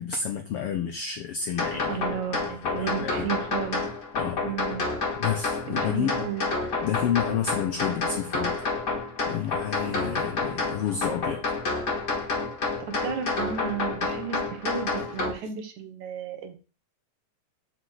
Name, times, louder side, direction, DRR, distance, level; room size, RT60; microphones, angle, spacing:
voice 1, 0.0-2.0 2.6-3.3 4.1-4.4 5.2-6.3 6.8-8.5 9.3-11.4, left 8 dB, 85° left, 1.2 m, -30 dB
sound 1, 1.6-15.3, left 3 dB, 35° left, 2.8 m, -29 dB
voice 2, 1.9-3.8 4.4-4.8 5.7-6.5 12.9-16.6, right 8 dB, 70° right, 2.5 m, -33 dB
6.2 x 5.1 x 6.4 m
omnidirectional pair, 3.5 m